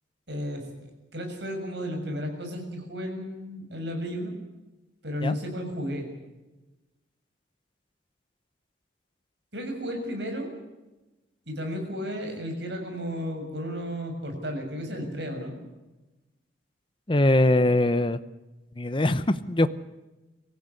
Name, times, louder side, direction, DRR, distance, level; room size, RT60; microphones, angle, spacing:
voice 1, 0.3-0.6 1.1-4.3 5.0-6.1 9.5-10.5 11.5-15.6, equal, 60° right, 3 dB, 6.8 m, -33 dB
voice 2, 17.1-18.2 18.8-19.7, left 1 dB, 25° left, 12 dB, 0.7 m, -22 dB
25.0 x 15.0 x 9.7 m, 1.1 s
head